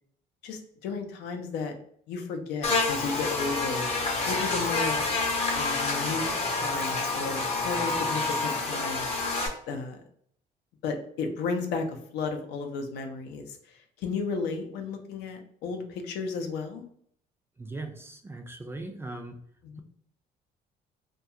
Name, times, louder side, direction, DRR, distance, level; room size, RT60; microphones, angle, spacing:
voice 1, 0.4-1.7 2.1-3.9 4.3-5.1 5.5-6.2 6.6-9.1 9.7-10.0 10.8-13.6 14.0-16.8 19.6-19.8, left 4 dB, 80° left, 5 dB, 0.5 m, -33 dB
Buzz, 2.6-9.5, left 3 dB, 40° left, 0.6 m, -28 dB
voice 2, 17.6-19.4, right 2 dB, 15° right, 5 dB, 0.3 m, -39 dB
2.3 x 2.2 x 2.7 m, 0.64 s
cardioid pair, 110°, 17 cm